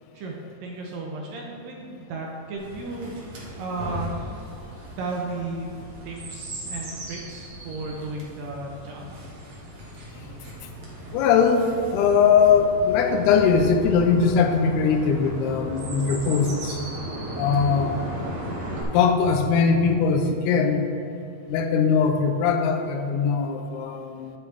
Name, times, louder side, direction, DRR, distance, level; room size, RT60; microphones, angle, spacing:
voice 1, 0.6-3.1 3.6-4.1 5.0-5.7 6.0-9.2 17.4-17.7, right 3 dB, 75° right, -1 dB, 2.2 m, -34 dB
Chirp tweet, 2.6-18.8, right 1 dB, 55° right, 1.9 m, -36 dB
voice 2, 11.1-11.6 11.9-16.8 17.4-17.9 18.9-20.9 21.5-24.3, left 6 dB, 85° left, 5 dB, 2.6 m, -20 dB
10.5 x 7.9 x 3.4 m, 2.7 s
omnidirectional pair, 4.6 m